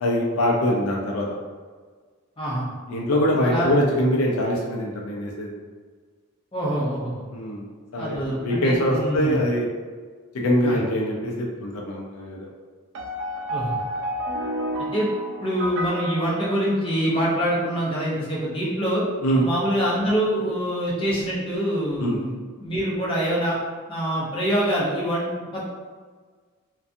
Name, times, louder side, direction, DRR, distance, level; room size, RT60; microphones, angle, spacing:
voice 1, 0.0-1.3 2.9-5.5 7.3-7.6 7.9-9.7 10.4-12.5 19.2-19.4 22.0-22.2, equal, 75° left, -2 dB, 0.4 m, -23 dB
voice 2, 2.4-2.7 3.4-3.8 6.5-7.3 8.0-9.4 10.6-10.8 13.5-13.8 14.9-15.1 15.4-19.0 19.4-23.6 23.9-25.6, equal, 25° left, -7 dB, 0.7 m, -25 dB
sound 1, 12.9-17.3, equal, 55° right, 0.3 m, -31 dB
2.5 x 2.2 x 2.5 m, 1.5 s
head